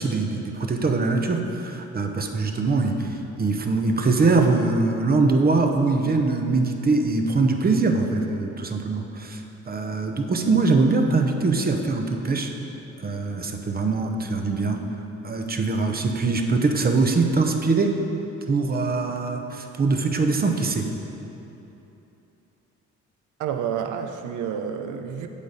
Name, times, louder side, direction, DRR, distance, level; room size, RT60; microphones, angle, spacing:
voice 1, 0.0-12.5 13.0-14.8 15.2-18.0 18.5-20.9, right 3 dB, 30° right, 4 dB, 0.7 m, -23 dB
voice 2, 23.4-25.3, right 8 dB, 80° right, 6 dB, 0.7 m, -29 dB
8.3 x 6.6 x 4.1 m, 3.0 s
cardioid pair, 90°, 30 cm